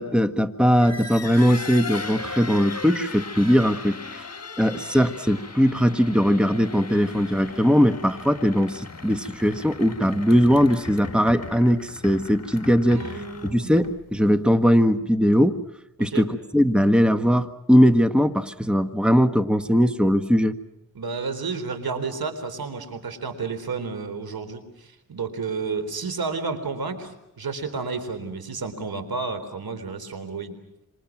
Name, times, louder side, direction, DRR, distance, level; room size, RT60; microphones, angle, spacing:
voice 1, 0.0-4.2 4.6-13.1 13.5-15.6 16.0-20.5, equal, 5° right, 10 dB, 1.5 m, -20 dB
sound 1, 0.7-14.1, left 3 dB, 45° left, 3.3 m, -38 dB
voice 2, 12.9-13.7 16.1-16.3 20.9-30.5, right 4 dB, 80° right, 9 dB, 4.0 m, -31 dB
27.0 x 27.0 x 6.1 m, 0.87 s
cardioid pair, 55°, 36 cm